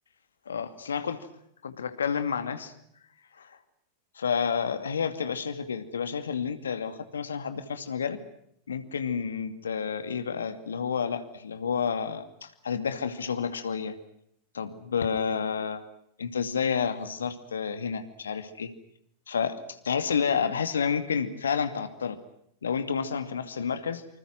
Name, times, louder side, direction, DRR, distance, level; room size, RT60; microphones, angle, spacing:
voice 1, 0.5-1.2 1.6-2.7 3.4-3.6 4.2-8.2 8.7-13.9 14.5-15.8 16.2-18.7 19.3-22.2 22.6-24.0, left 6 dB, 70° left, 10 dB, 2.4 m, -30 dB
27.5 x 26.0 x 6.1 m, 0.73 s
figure-of-eight pair, 90°, 0 cm